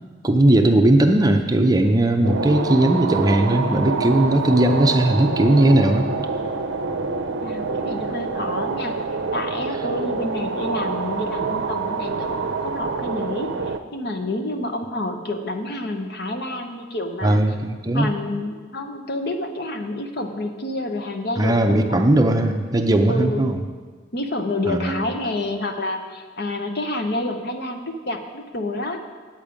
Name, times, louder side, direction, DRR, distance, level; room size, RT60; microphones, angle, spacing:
voice 1, 0.2-6.1 17.2-18.1 21.4-23.6 24.7-25.0, right 1 dB, 20° right, 5 dB, 0.5 m, -18 dB
sound 1, 2.2-13.8, right 4 dB, 80° right, 0.6 m, -26 dB
voice 2, 7.4-9.0 9.3-17.4 17.9-21.6 21.9-22.1 23.1-23.5 24.1-29.0, left 1 dB, 55° left, 5 dB, 0.9 m, -28 dB
8.9 x 8.6 x 5.1 m, 1.5 s
head